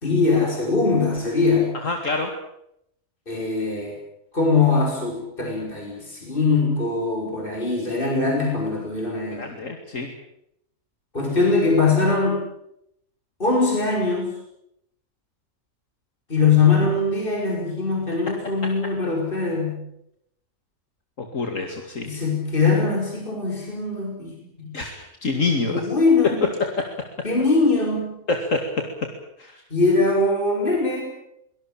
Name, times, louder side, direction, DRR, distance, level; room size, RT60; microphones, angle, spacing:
voice 1, 0.0-1.7 3.3-4.0 4.3-9.5 11.1-12.5 13.4-14.3 16.3-19.9 22.0-24.8 25.7-26.5 27.2-28.2 29.7-31.0, left 3 dB, 40° left, 0 dB, 5.5 m, -22 dB
voice 2, 1.8-2.3 9.4-10.1 21.2-22.1 24.7-25.9 28.3-28.9 29.4-29.6, left 3 dB, 65° left, 4 dB, 2.7 m, -26 dB
24.5 x 18.5 x 8.9 m, 0.76 s
omnidirectional pair, 1.5 m